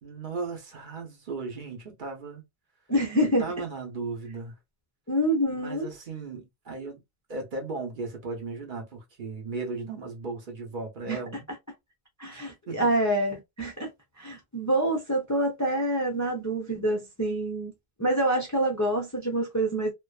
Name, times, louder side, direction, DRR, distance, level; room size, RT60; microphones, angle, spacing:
voice 1, 0.0-2.4 3.4-4.5 5.5-7.0 7.3-11.5 12.3-12.4 12.7-12.9, right 3 dB, 55° right, 0.9 m, -36 dB
voice 2, 2.9-3.5 5.1-5.9 11.1-11.2 12.2-13.9 14.2-17.7 18.0-19.9, right 1 dB, 25° left, 0.4 m, -26 dB
2.5 x 2.2 x 2.2 m
omnidirectional pair, 1.1 m